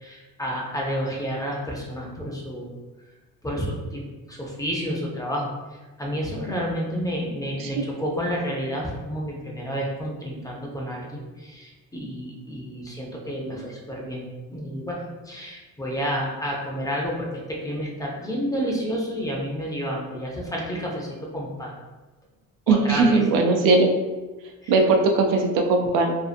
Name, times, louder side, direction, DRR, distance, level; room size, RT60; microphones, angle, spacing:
voice 1, 0.0-2.7 3.4-4.0 4.3-5.5 6.0-14.2 14.5-15.0 15.3-21.1 21.3-21.7 22.7-23.2 24.6-24.7, equal, 10° left, -3 dB, 0.5 m, -30 dB
voice 2, 22.7-23.9 24.7-26.2, right 3 dB, 85° right, 3 dB, 0.5 m, -19 dB
2.6 x 2.5 x 2.4 m, 1.2 s
cardioid pair, 125°, 32 cm